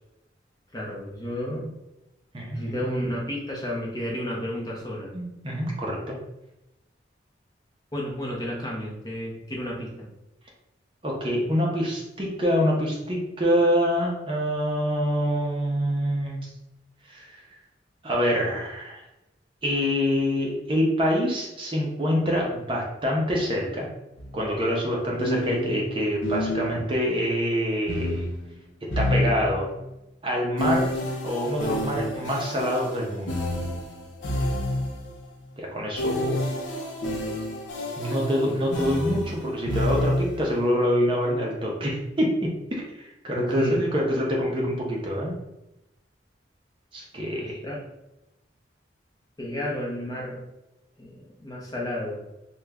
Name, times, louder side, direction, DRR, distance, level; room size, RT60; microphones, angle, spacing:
voice 1, 0.7-1.7 2.5-5.1 7.9-10.1 38.4-38.6 43.3-43.8 47.4-47.8 49.4-50.4 51.0-52.3, equal, 20° left, -3 dB, 0.6 m, -32 dB
voice 2, 5.1-6.2 11.0-16.5 17.1-17.4 18.0-19.0 19.6-23.9 24.3-28.2 29.0-29.7 30.2-30.9 31.2-33.4 35.6-36.4 38.0-45.3 46.9-47.6, equal, 30° right, -2 dB, 0.6 m, -26 dB
sound 1, 24.2-24.3 25.2-27.0 27.9-29.8 30.6-35.1 36.0-40.5, left 1 dB, 80° left, 0.7 m, -29 dB
2.9 x 2.2 x 3.5 m, 0.94 s
head